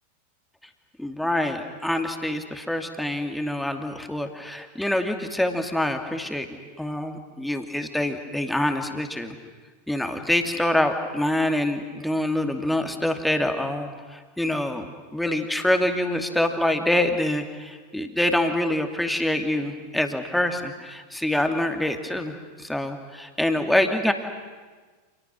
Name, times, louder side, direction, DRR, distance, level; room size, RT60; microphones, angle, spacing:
voice 1, 1.0-6.5 6.8-9.4 9.9-24.1, left 1 dB, 5° left, 5 dB, 2.6 m, -25 dB
30.0 x 27.5 x 6.2 m, 1.4 s
figure-of-eight pair, 90°, 0 cm